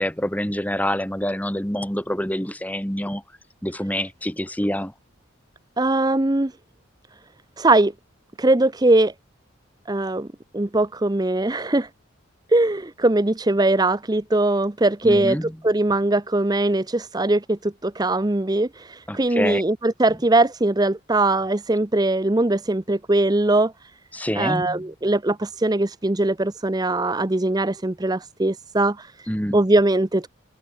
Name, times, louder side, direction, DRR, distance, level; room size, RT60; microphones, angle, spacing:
voice 1, 0.0-3.2 3.6-4.9 15.0-15.6 19.1-19.6 24.1-24.9 29.3-29.6, equal, 5° left, 3.1 m, -26 dB
voice 2, 5.8-6.5 7.6-7.9 8.4-9.1 9.9-10.3 10.5-11.9 12.5-23.9 24.4-29.3 29.5-30.3, right 2 dB, 20° right, 0.7 m, -21 dB
head